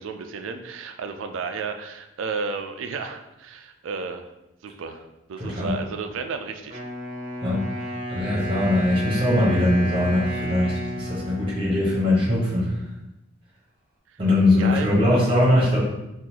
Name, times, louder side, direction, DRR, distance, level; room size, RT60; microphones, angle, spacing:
voice 1, 0.0-4.3 4.6-6.8 14.6-14.9, right 4 dB, 75° right, 6 dB, 0.4 m, -32 dB
voice 2, 5.4-5.7 7.4-7.6 8.1-12.7 14.2-15.8, left 1 dB, 25° right, -6 dB, 1.1 m, -21 dB
Wind instrument woodwind instrument, 6.7-12.7, equal, 45° right, 0.7 m, -32 dB
3.8 x 2.5 x 2.9 m, 0.91 s
head